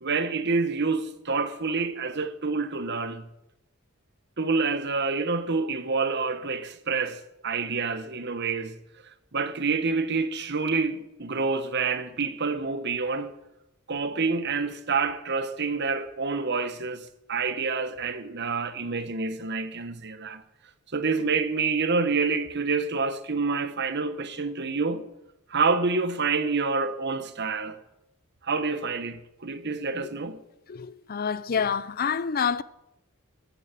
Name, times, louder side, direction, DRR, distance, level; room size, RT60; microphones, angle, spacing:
voice 1, 0.0-3.2 4.4-8.8 9.1-13.3 13.9-20.4 20.9-25.1 25.5-27.8 28.4-30.4, right 4 dB, 50° right, 1.3 m, -28 dB
voice 2, 30.7-32.6, left 6 dB, 40° left, 0.5 m, -27 dB
14.5 x 12.5 x 7.6 m
head